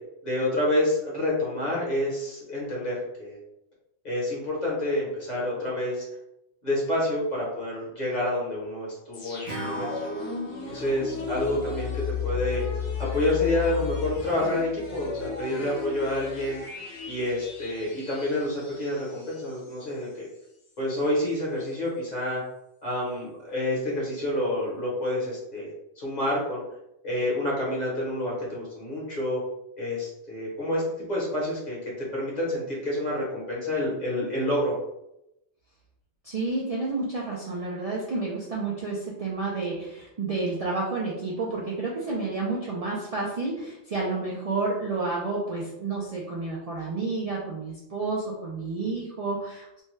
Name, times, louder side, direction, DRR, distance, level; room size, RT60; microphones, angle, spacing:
voice 1, 0.2-3.4 4.0-6.1 6.6-9.9 10.6-12.6 13.0-16.6 17.1-20.3 20.8-22.4 22.8-25.7 26.0-26.6 27.0-29.4 29.8-30.8 31.1-34.8, left 1 dB, 45° left, -5 dB, 1.0 m, -28 dB
sound 1, 9.1-19.9 20.3-20.4, left 6 dB, 70° left, 0.9 m, -35 dB
Acoustic guitar / Strum, 9.5-12.7, right 1 dB, 65° right, 1.0 m, -40 dB
voice 2, 36.2-49.8, right 3 dB, 50° right, -4 dB, 0.4 m, -30 dB
2.6 x 2.2 x 3.1 m, 0.86 s
omnidirectional pair, 1.1 m